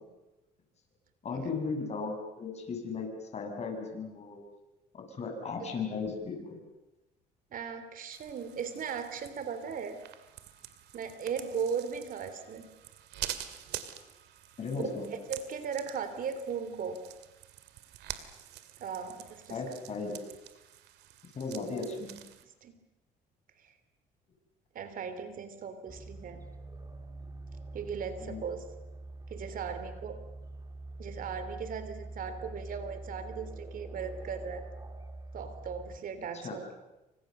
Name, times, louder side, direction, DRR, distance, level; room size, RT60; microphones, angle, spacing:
voice 1, 1.2-4.4 4.9-6.6 14.6-15.1 19.5-20.1 21.3-22.2 28.3-28.4 36.3-36.6, left 4 dB, 40° left, 3 dB, 7.5 m, -36 dB
voice 2, 7.5-10.0 10.9-12.7 14.7-14.8 15.1-17.0 18.8-19.6 22.6-22.8 23.6-23.7 24.7-26.4 27.7-28.7 29.3-30.2 31.0-34.6 35.3-36.7, right 6 dB, 55° right, 11 dB, 3.0 m, -37 dB
sound 1, 8.1-22.4, right 12 dB, 80° right, 2.3 m, -46 dB
sound 2, 25.9-36.0, right 2 dB, 20° right, 2.6 m, -44 dB
28.5 x 25.5 x 6.7 m, 0.99 s
cardioid pair, 110°, 17 cm